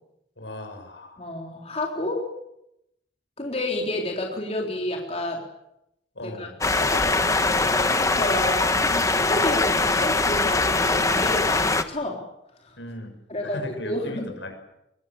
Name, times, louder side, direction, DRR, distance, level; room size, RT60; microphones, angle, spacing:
voice 1, 0.4-1.2 6.1-6.6 12.8-13.1 13.4-14.5, left 1 dB, 80° left, 6 dB, 6.5 m, -37 dB
voice 2, 1.2-2.2 3.4-5.4 6.2-12.2 12.6-12.8 13.3-14.3, left 1 dB, 35° left, 0 dB, 3.9 m, -30 dB
sound 1, 6.6-11.8, left 3 dB, 20° left, 1.2 m, -22 dB
23.5 x 22.5 x 8.8 m, 0.84 s
head